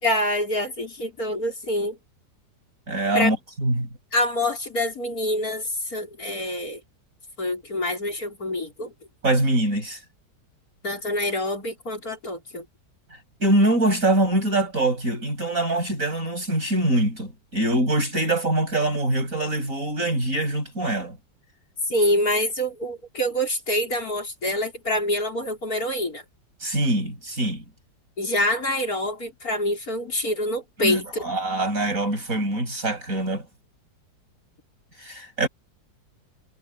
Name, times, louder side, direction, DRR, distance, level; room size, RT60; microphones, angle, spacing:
voice 1, 0.0-2.0 3.1-3.3 4.1-6.8 7.4-8.9 10.8-12.7 21.9-26.2 28.2-31.3, left 1 dB, 50° left, 5.4 m, -26 dB
voice 2, 2.9-3.9 9.2-10.0 13.4-21.2 26.6-27.6 30.8-33.4 35.0-35.5, right 1 dB, 45° right, 8.0 m, -24 dB
omnidirectional pair, 1.9 m